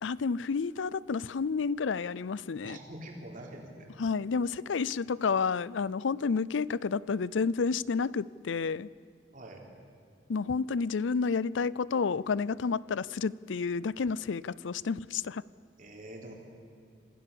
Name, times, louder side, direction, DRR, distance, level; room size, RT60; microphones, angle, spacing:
voice 1, 0.0-2.8 4.0-8.9 10.3-15.4, left 5 dB, 90° left, 21 dB, 0.5 m, -30 dB
voice 2, 2.6-3.9 9.3-9.6 15.8-16.3, right 1 dB, 45° right, 1 dB, 3.7 m, -45 dB
26.0 x 16.0 x 6.9 m, 2.6 s
head